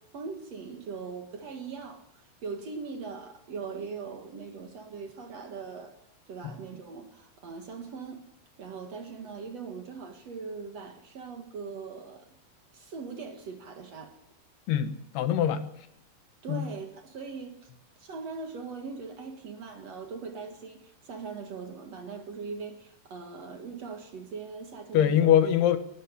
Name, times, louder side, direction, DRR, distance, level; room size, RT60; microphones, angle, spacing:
voice 1, 0.0-5.9 6.3-8.2 8.6-12.3 12.7-14.2 16.4-17.6 18.0-25.3, right 5 dB, 50° right, 5 dB, 2.4 m, -40 dB
voice 2, 14.7-15.7 16.5-16.7 24.9-25.8, left 10 dB, 90° left, 10 dB, 3.4 m, -23 dB
21.0 x 12.5 x 9.8 m, 0.78 s
omnidirectional pair, 4.5 m